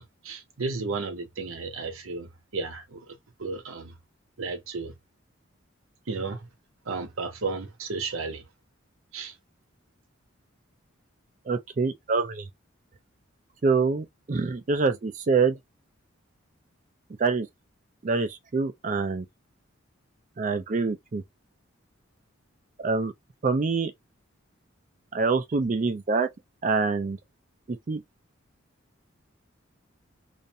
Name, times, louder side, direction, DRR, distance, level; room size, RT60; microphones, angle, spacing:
voice 1, 0.0-3.9 4.4-4.9 6.1-6.5 6.9-8.4 9.1-9.3, right 4 dB, 85° right, 0.8 m, -33 dB
voice 2, 11.5-12.5 13.6-15.6 17.2-17.5 18.0-19.3 20.4-21.2 22.8-23.1 23.4-23.9 25.1-26.3 26.6-27.2 27.7-28.0, right 4 dB, 40° right, 0.4 m, -25 dB
2.5 x 2.2 x 2.6 m
head